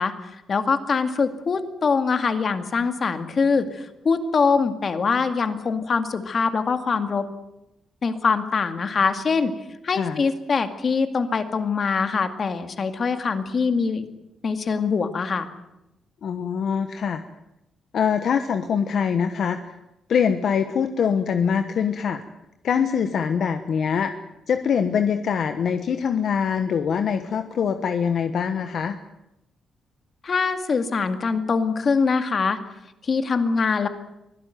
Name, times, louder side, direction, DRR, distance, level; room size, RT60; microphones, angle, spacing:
voice 1, 0.0-7.3 8.0-9.5 9.8-14.0 14.4-15.5 30.2-32.6 33.0-33.9, left 5 dB, 40° left, 8 dB, 2.1 m, -23 dB
voice 2, 16.2-17.2 17.9-19.8 20.1-22.2 22.6-24.2 24.5-29.0, left 7 dB, 60° left, 8 dB, 1.2 m, -23 dB
24.0 x 17.0 x 9.3 m, 0.90 s
cardioid pair, 140°, 0 cm